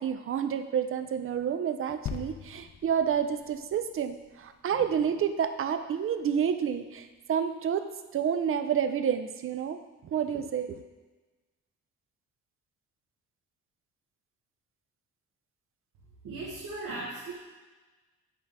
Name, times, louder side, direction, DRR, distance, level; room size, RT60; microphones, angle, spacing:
voice 1, 0.0-7.8 8.1-10.8, right 8 dB, 45° right, 9 dB, 0.6 m, -29 dB
sound 1, 2.1-5.6 6.3-6.4, left 8 dB, 55° left, 0.7 m, -43 dB
voice 2, 16.2-17.3, right 2 dB, 85° right, -7 dB, 1.4 m, -37 dB
10.5 x 3.7 x 3.6 m, 1.2 s
cardioid pair, 90°, 30 cm